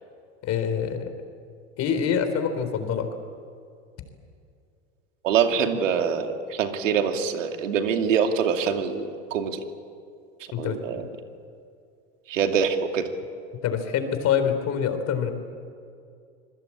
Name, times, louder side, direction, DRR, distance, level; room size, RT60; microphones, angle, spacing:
voice 1, 0.4-1.2 1.8-3.1 10.5-11.1 13.6-15.3, left 7 dB, 45° left, 8 dB, 4.0 m, -26 dB
voice 2, 5.2-9.6 10.6-11.0 12.3-13.0, right 7 dB, 85° right, 5 dB, 2.7 m, -24 dB
26.0 x 22.0 x 8.7 m, 2.4 s
supercardioid pair, 110°, 37 cm